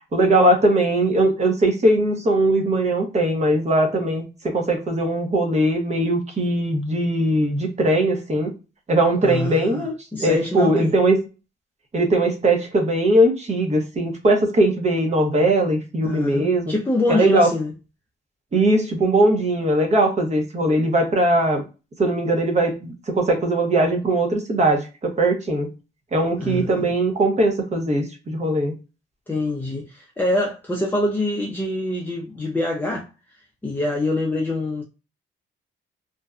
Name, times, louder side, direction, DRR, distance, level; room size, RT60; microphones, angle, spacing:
voice 1, 0.1-8.5 8.9-11.2 11.9-16.7 17.1-17.5 18.5-21.6 22.0-25.7 26.1-28.7, right 1 dB, 35° right, 0.8 m, -20 dB
voice 2, 9.2-9.9 10.1-11.0 16.0-17.7 26.4-26.9 29.3-33.1 33.6-34.8, left 1 dB, 10° left, 0.5 m, -25 dB
2.5 x 2.1 x 2.4 m
cardioid pair, 90°, 20 cm